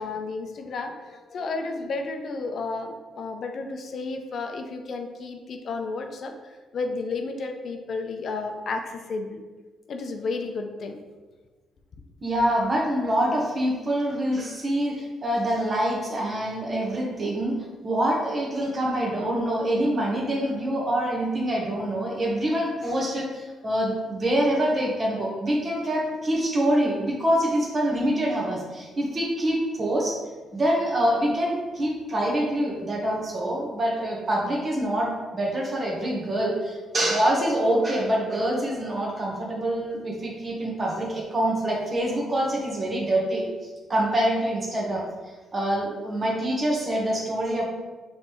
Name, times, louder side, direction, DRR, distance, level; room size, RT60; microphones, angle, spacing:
voice 1, 0.0-6.3 6.7-9.4 9.9-11.0, left 3 dB, 55° left, 5 dB, 0.4 m, -32 dB
voice 2, 12.2-17.6 17.8-30.2 30.5-43.5 43.9-45.0 45.5-47.6, right 1 dB, 30° right, -2 dB, 1.2 m, -25 dB
5.1 x 3.2 x 3.1 m, 1.3 s
cardioid pair, 90°, 0 cm